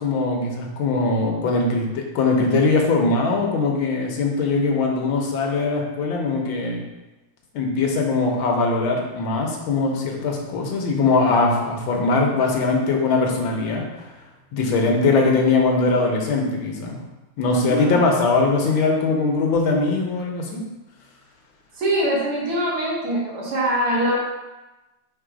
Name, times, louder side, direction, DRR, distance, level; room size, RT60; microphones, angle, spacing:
voice 1, 0.0-6.8 7.5-14.1 14.5-17.0 17.4-20.6, left 3 dB, 70° left, 1 dB, 1.7 m, -21 dB
voice 2, 17.5-18.0 21.8-24.2, right 1 dB, 85° right, -5 dB, 2.4 m, -23 dB
5.4 x 3.6 x 5.0 m, 1.1 s
omnidirectional pair, 2.4 m